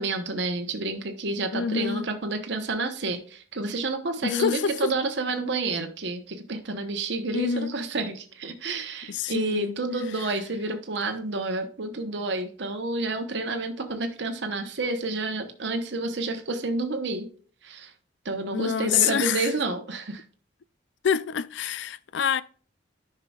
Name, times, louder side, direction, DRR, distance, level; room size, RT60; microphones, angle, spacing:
voice 1, 0.0-17.3 17.6-17.9 18.2-20.2, right 2 dB, 65° right, 1.0 m, -29 dB
voice 2, 1.5-2.1 4.2-4.9 7.3-7.7 9.1-9.7 18.5-19.5 21.0-22.4, left 7 dB, 65° left, 0.4 m, -26 dB
10.5 x 5.6 x 2.3 m
head